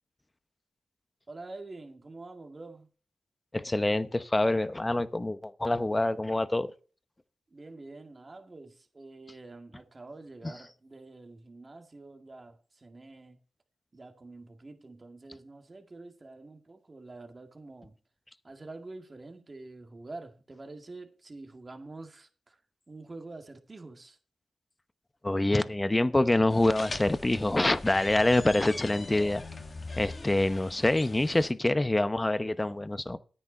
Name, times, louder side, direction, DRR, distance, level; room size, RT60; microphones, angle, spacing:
voice 1, 1.3-2.9 7.5-13.4 13.9-18.0 18.4-22.6 22.9-24.2, right 2 dB, 40° right, 2.0 m, -47 dB
voice 2, 3.5-6.7 25.2-29.4 30.0-33.2, left 2 dB, 25° left, 0.9 m, -26 dB
sound 1, 26.5-31.5, left 3 dB, 50° left, 1.5 m, -41 dB
9.9 x 9.5 x 4.4 m
supercardioid pair, 40°, 0 cm